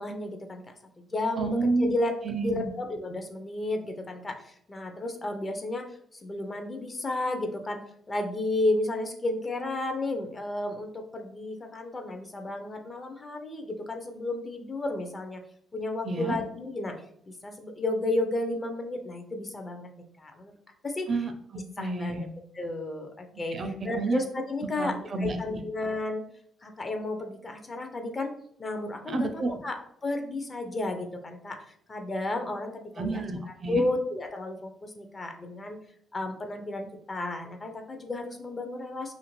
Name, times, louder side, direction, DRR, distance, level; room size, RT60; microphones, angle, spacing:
voice 1, 0.0-5.8 6.1-7.8 8.1-15.4 15.7-16.9 17.3-19.9 20.2-20.5 20.8-21.1 21.8-22.3 22.5-26.2 26.6-28.3 28.6-31.6 31.9-33.2 33.7-35.8 36.1-39.1, left 2 dB, 30° left, 5 dB, 0.5 m, -32 dB
voice 2, 1.4-1.9 2.2-2.7 16.0-16.4 21.1-22.3 23.5-24.2 24.8-25.6 29.1-29.6 33.0-33.8, right 2 dB, 45° right, 6 dB, 0.4 m, -30 dB
2.8 x 2.5 x 3.0 m, 0.67 s
cardioid pair, 90°, 0 cm